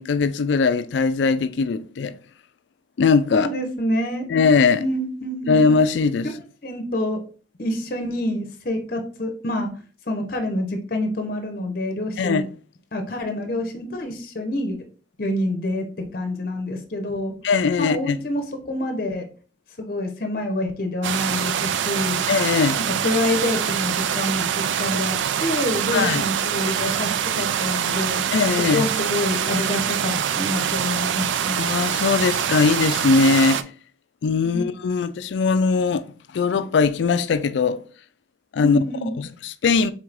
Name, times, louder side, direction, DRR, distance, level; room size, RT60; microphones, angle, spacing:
voice 1, 0.0-2.1 3.0-3.5 4.3-4.8 5.5-6.3 12.2-12.5 17.4-18.2 22.3-22.8 25.9-26.3 28.3-28.9 31.6-33.6 34.2-36.0 36.3-37.8 38.5-38.8 39.2-39.9, left 4 dB, 75° left, 0.4 m, -20 dB
voice 2, 3.3-4.3 4.8-5.6 6.6-7.2 7.6-9.7 10.1-12.4 12.9-14.8 15.2-17.3 17.8-19.3 19.8-22.3 22.7-28.3 28.7-31.6 34.4-34.7 38.6-39.1, left 1 dB, 50° left, 0.7 m, -27 dB
sound 1, 21.0-33.6, right 9 dB, 85° right, 0.3 m, -24 dB
4.7 x 3.6 x 2.5 m
head